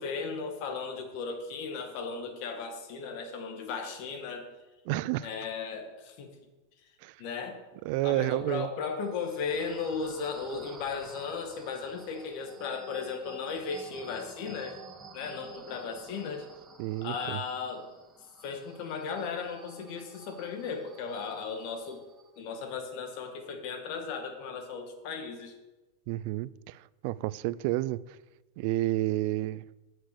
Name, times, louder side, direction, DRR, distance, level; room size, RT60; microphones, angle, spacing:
voice 1, 0.0-4.5 5.2-6.3 7.2-7.6 8.0-14.8 15.1-16.5 17.0-17.9 18.4-22.0 22.4-25.5, left 5 dB, 50° left, 1.7 m, -36 dB
voice 2, 4.9-5.3 7.0-7.1 7.8-8.7 16.8-17.4 26.1-28.2 28.6-29.6, right 17 dB, 55° right, 0.3 m, -30 dB
sound 1, 9.0-22.4, right 5 dB, 20° right, 1.2 m, -52 dB
7.8 x 6.0 x 6.6 m
supercardioid pair, 130°, 0 cm